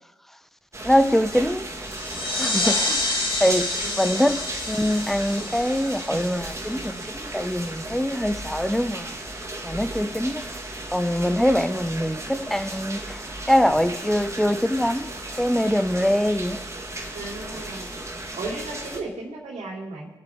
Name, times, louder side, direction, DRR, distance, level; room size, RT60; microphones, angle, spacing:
sound 1, 0.7-19.0, right 1 dB, 25° right, 1.9 m, -35 dB
voice 1, 0.8-1.6 2.2-4.4 4.7-9.1 9.6-10.4 10.9-13.2 13.5-15.1 15.4-16.6, equal, ahead, 0.8 m, -23 dB
sound 2, 1.9-7.2, left 2 dB, 45° left, 2.8 m, -28 dB
voice 2, 3.8-4.4 11.2-11.7 17.1-17.9 18.4-20.1, right 2 dB, 70° right, 3.0 m, -36 dB
21.5 x 7.4 x 3.6 m
hypercardioid pair, 40°, 12 cm